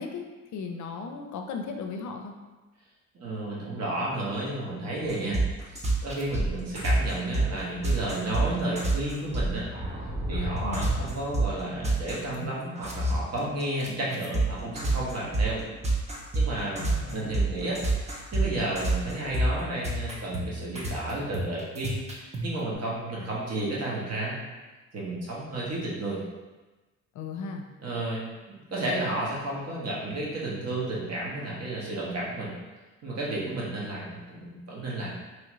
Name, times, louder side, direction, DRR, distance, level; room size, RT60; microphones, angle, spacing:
voice 1, 0.0-2.3 10.6-10.9 16.8-17.3 27.1-27.6, left 5 dB, 70° left, 4 dB, 0.5 m, -36 dB
voice 2, 3.1-5.4 5.7-9.7 10.3-15.6 16.3-16.8 17.1-24.4 24.9-26.2 27.8-32.5 33.0-35.1, right 1 dB, 55° right, -5 dB, 1.1 m, -32 dB
sound 1, 5.1-12.4 12.7-22.4, right 2 dB, 20° right, 0.6 m, -28 dB
3.0 x 2.4 x 3.0 m, 1.2 s
cardioid pair, 90°, 30 cm